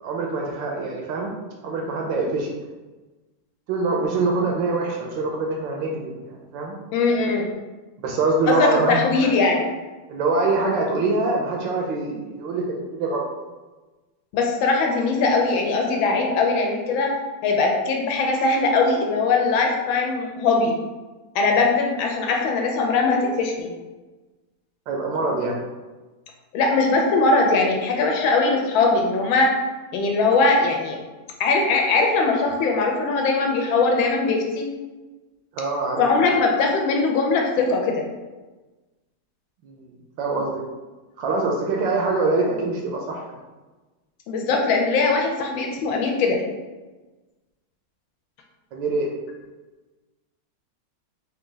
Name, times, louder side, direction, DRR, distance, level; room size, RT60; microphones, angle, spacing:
voice 1, 0.0-1.3 1.6-2.5 3.7-6.8 8.0-9.1 10.1-13.3 24.9-25.6 35.5-36.0 39.6-39.9 40.2-40.6 41.2-43.2 48.7-49.1, right 3 dB, 70° right, 0 dB, 1.2 m, -24 dB
voice 2, 6.9-7.5 8.5-9.7 14.3-20.8 21.3-23.7 26.5-29.6 29.9-31.0 31.4-34.7 36.0-38.1 44.3-46.4, left 3 dB, 75° left, 2 dB, 1.3 m, -21 dB
3.9 x 2.8 x 3.8 m, 1.2 s
omnidirectional pair, 2.3 m